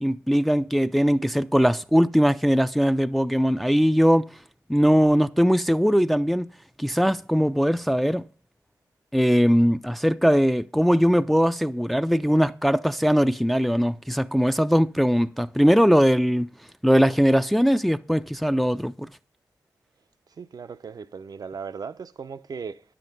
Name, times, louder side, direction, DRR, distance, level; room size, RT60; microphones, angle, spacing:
voice 1, 0.0-4.3 4.7-6.5 6.8-8.2 9.1-16.5 16.8-19.1, equal, ahead, 0.4 m, -20 dB
voice 2, 20.4-22.8, right 5 dB, 60° right, 0.6 m, -37 dB
10.0 x 7.7 x 4.0 m
cardioid pair, 40°, 7 cm